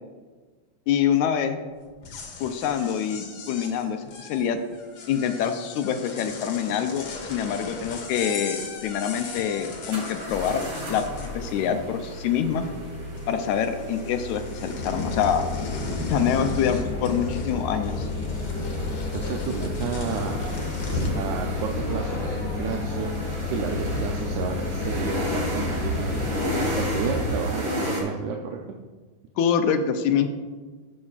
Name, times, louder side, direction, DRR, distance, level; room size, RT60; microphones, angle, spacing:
voice 1, 0.9-1.6 2.4-4.6 5.1-11.1 11.3-12.6 13.3-15.5 16.1-18.1 29.4-30.3, left 8 dB, 80° left, 7 dB, 1.8 m, -25 dB
sound 1, 1.9-11.9 12.2-12.9 13.2-21.2, left 3 dB, 60° left, 1.4 m, -37 dB
sound 2, 8.8-8.9 9.9-28.0, equal, 45° right, 2.2 m, -33 dB
sound 3, 14.8-27.3, left 4 dB, 35° left, 2.3 m, -31 dB
voice 2, 19.1-20.4 20.9-23.1 23.5-26.4 26.8-28.8, right 6 dB, 80° right, 1 dB, 2.0 m, -31 dB
14.0 x 6.3 x 2.4 m, 1.3 s
omnidirectional pair, 3.6 m